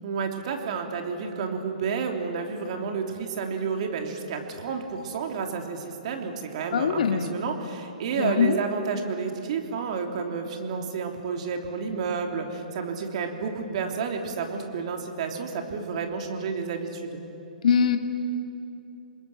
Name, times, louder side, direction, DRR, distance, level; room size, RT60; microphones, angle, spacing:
voice 1, 0.0-17.2, right 5 dB, 50° right, 3 dB, 3.2 m, -30 dB
voice 2, 6.7-7.3 8.2-8.6 17.6-18.0, left 6 dB, 60° left, 6 dB, 2.1 m, -22 dB
27.0 x 21.0 x 9.1 m, 2.9 s
hypercardioid pair, 125°, 5 cm